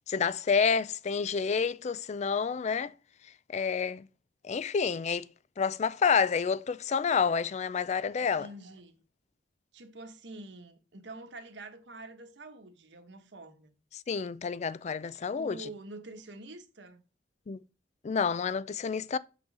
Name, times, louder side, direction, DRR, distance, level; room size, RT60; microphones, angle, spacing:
voice 1, 0.1-2.9 3.5-4.0 4.4-5.3 5.6-8.5 14.1-15.7 17.5-17.6 18.0-19.2, left 6 dB, 40° left, 0.4 m, -29 dB
voice 2, 8.4-9.0 9.7-13.7 15.3-17.0, right 2 dB, 80° right, 1.2 m, -46 dB
6.1 x 3.9 x 6.2 m
head